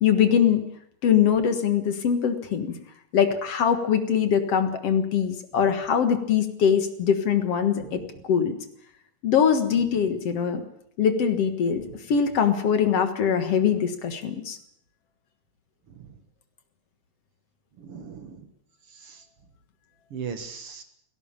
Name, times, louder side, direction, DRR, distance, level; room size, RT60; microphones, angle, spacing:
voice 1, 0.0-0.6 1.0-2.8 3.1-8.0 8.3-8.6 9.2-10.6 11.0-14.6, left 7 dB, 60° left, 8 dB, 2.4 m, -22 dB
voice 2, 17.8-18.5 18.9-19.2 20.1-20.8, right 6 dB, 55° right, 9 dB, 2.2 m, -39 dB
17.5 x 17.0 x 8.9 m, 0.70 s
omnidirectional pair, 3.3 m